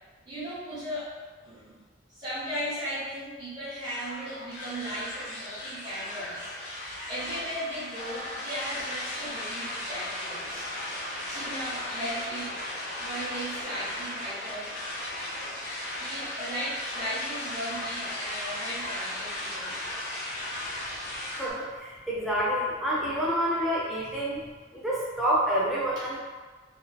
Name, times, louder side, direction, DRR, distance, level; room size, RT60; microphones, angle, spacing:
voice 1, 0.3-1.1 1.4-1.8 2.1-10.7 11.3-12.5 13.0-14.7 16.0-20.6 25.9-26.1, equal, 35° right, -14 dB, 0.7 m, -37 dB
sound 1, 3.8-21.5, left 1 dB, 60° left, 0.6 m, -36 dB
voice 2, 21.3-24.5 24.7-26.2, equal, ahead, -7 dB, 0.4 m, -28 dB
2.4 x 2.2 x 2.2 m, 1.4 s
head